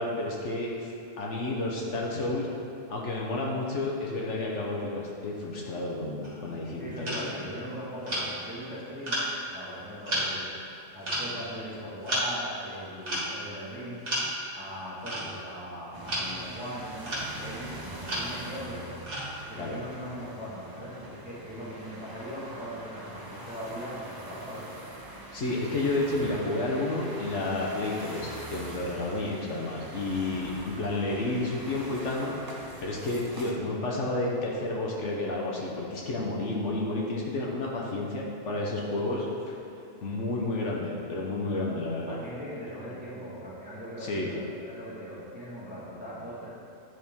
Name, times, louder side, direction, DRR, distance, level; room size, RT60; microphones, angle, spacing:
voice 1, 0.0-2.5 2.9-7.5 19.6-19.8 25.3-32.3 32.8-39.6 40.0-42.2 44.0-44.3, left 2 dB, 70° left, -2 dB, 1.1 m, -31 dB
sound 1, 6.2-6.5 7.1-7.3 8.1-8.3 9.1-9.3 10.1-10.3 11.0-11.3 12.0-12.3 13.0-13.4 14.1-14.4 15.0-15.6 16.1-16.2 17.0-17.4 18.0-18.3 19.1-19.4, equal, 60° right, 1.8 m, -31 dB
voice 2, 6.7-10.5 10.9-18.9 19.5-24.7 41.7-46.5, equal, 5° right, -9 dB, 1.3 m, -40 dB
sound 2, 15.9-33.5, right 1 dB, 25° right, 0.5 m, -43 dB
9.4 x 4.3 x 3.5 m, 2.8 s
omnidirectional pair, 1.3 m